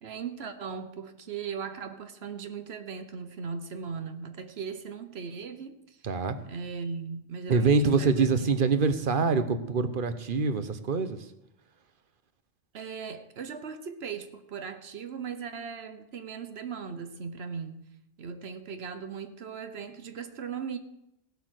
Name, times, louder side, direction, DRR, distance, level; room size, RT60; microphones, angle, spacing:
voice 1, 0.0-6.0 6.4-8.8 12.7-17.9 18.2-20.8, right 6 dB, 85° right, 9 dB, 1.2 m, -38 dB
voice 2, 6.0-6.4 7.5-11.2, right 4 dB, 55° right, 10 dB, 1.1 m, -25 dB
16.5 x 8.1 x 6.4 m, 0.84 s
omnidirectional pair, 1.0 m